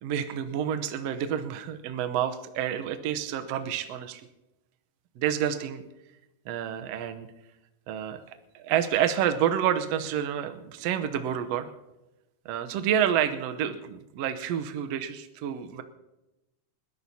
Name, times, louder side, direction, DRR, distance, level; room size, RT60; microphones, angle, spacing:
voice 1, 0.0-4.2 5.2-5.8 6.4-7.3 7.9-8.2 8.5-11.7 12.4-15.8, right 9 dB, 70° right, 8 dB, 1.5 m, -29 dB
29.0 x 12.5 x 2.8 m, 0.98 s
omnidirectional pair, 3.9 m